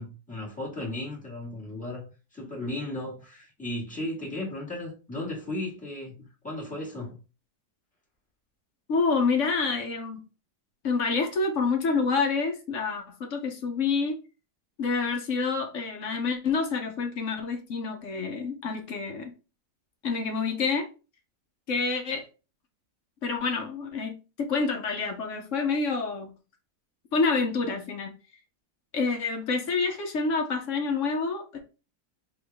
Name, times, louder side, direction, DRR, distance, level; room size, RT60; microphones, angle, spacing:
voice 1, 0.0-2.0 2.3-7.2, left 1 dB, 5° left, 1.8 m, -35 dB
voice 2, 8.9-10.2 10.8-14.2 14.8-19.3 20.0-20.9 21.7-22.3 23.2-24.1 24.4-26.3 27.1-28.1 28.9-31.6, left 4 dB, 60° left, 1.0 m, -27 dB
3.8 x 3.0 x 3.4 m
omnidirectional pair, 1.7 m